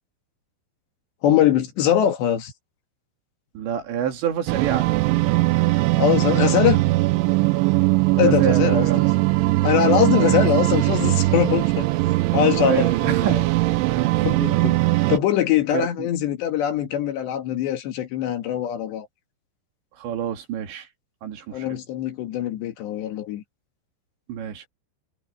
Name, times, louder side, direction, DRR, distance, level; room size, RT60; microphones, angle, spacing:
voice 1, 1.2-2.5 6.0-6.8 8.2-8.9 9.6-11.9 12.3-13.4 14.2-14.8 15.1-19.1 21.5-23.4, left 10 dB, 70° left, 4.0 m, -22 dB
voice 2, 3.5-4.9 8.2-9.1 10.1-10.4 12.6-13.4 13.9-14.3 15.7-16.1 20.0-20.9 21.2-21.8 24.3-24.7, right 9 dB, 70° right, 4.6 m, -28 dB
sound 1, 4.5-15.2, right 20 dB, 85° right, 3.1 m, -20 dB
omnidirectional pair, 5.4 m